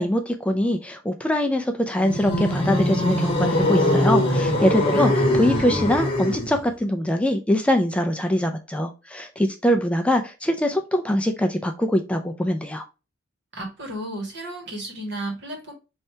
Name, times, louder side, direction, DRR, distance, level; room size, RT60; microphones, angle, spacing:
voice 1, 0.0-12.8, left 1 dB, 5° left, 0.3 m, -23 dB
sound 1, 2.0-6.6, left 1 dB, 30° left, 0.9 m, -22 dB
voice 2, 4.6-5.1 13.5-15.7, right 1 dB, 60° right, 1.5 m, -33 dB
3.3 x 2.7 x 4.3 m
head